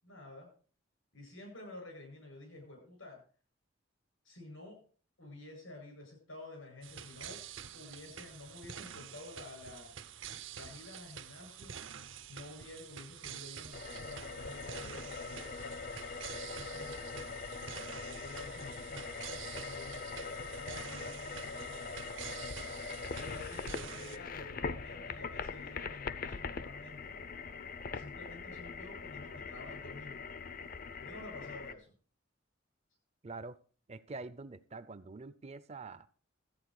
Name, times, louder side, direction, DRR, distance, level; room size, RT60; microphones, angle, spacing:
voice 1, 0.0-0.5 1.1-3.2 4.2-4.8 5.2-7.4 7.7-9.9 10.5-11.7 12.3-15.8 16.5-17.4 18.0-22.3 23.1-27.2 27.9-30.2 31.0-31.9, left 2 dB, 90° left, 2 dB, 7.9 m, -50 dB
sound 1, 6.8-24.2, right 8 dB, 70° right, 0.8 m, -48 dB
sound 2, 13.7-31.7, left 4 dB, 45° left, 0.6 m, -42 dB
voice 2, 33.2-33.6 33.9-36.1, right 3 dB, 30° right, 16 dB, 0.5 m, -45 dB
13.5 x 8.9 x 4.7 m, 0.41 s
head